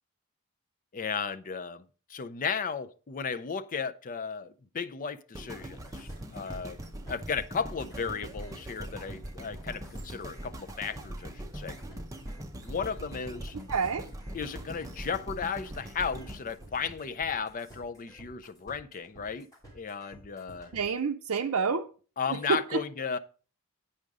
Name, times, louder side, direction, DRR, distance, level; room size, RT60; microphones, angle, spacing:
voice 1, 0.9-6.8 7.1-11.8 12.6-13.5 14.3-19.5 19.7-20.7 22.2-23.2, left 6 dB, 40° left, 0.5 m, -35 dB
sound 1, 5.3-17.5 18.1-18.2, right 1 dB, 15° right, 0.8 m, -42 dB
sound 2, 5.6-21.0, right 1 dB, 15° left, 3.1 m, -52 dB
voice 2, 13.7-14.1 20.7-21.8 22.3-22.8, right 5 dB, 70° right, 0.5 m, -28 dB
8.7 x 5.2 x 4.7 m
head